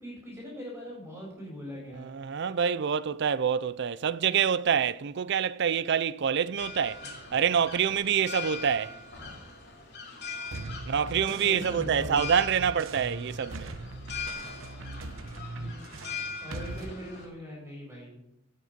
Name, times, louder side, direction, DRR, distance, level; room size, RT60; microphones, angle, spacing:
voice 1, 0.0-2.1 11.1-12.3 15.6-16.1 16.4-18.2, equal, 10° right, 4.2 m, -41 dB
voice 2, 1.9-9.0 10.9-13.7, right 7 dB, 60° right, 0.5 m, -27 dB
sound 1, 6.6-17.3, left 4 dB, 55° left, 2.8 m, -41 dB
sound 2, 10.5-16.9, right 2 dB, 80° right, 0.9 m, -40 dB
17.0 x 6.6 x 5.1 m
head